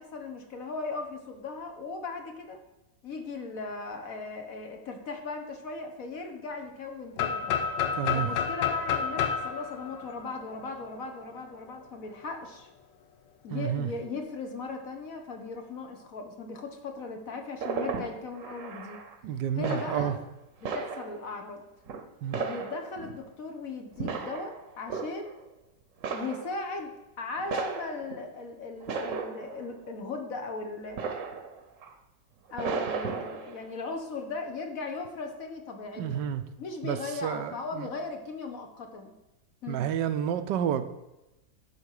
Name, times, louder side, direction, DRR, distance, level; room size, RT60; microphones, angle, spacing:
voice 1, 0.0-2.6 3.0-7.5 8.1-12.7 13.4-19.0 19.6-20.1 20.6-21.7 22.3-25.4 26.1-26.9 27.2-31.0 32.5-36.3 36.6-39.1 39.6-39.9, left 3 dB, 55° left, 4 dB, 1.4 m, -38 dB
sound 1, 7.2-11.0, left 7 dB, 85° left, 1.5 m, -30 dB
voice 2, 7.9-8.4 13.5-13.9 19.2-20.2 22.2-22.4 36.0-36.4 36.8-37.9 39.7-40.9, right 9 dB, 80° right, 10 dB, 1.3 m, -30 dB
sound 2, 17.6-19.3 19.6-20.2 20.6-21.3 21.9-22.0 22.3-23.3 23.9-25.5 26.0-26.6 27.4-28.2 28.8-29.7 31.0-31.9 32.5-33.7, right 5 dB, 55° right, 1.1 m, -35 dB
11.5 x 4.2 x 6.5 m, 0.98 s
omnidirectional pair, 1.9 m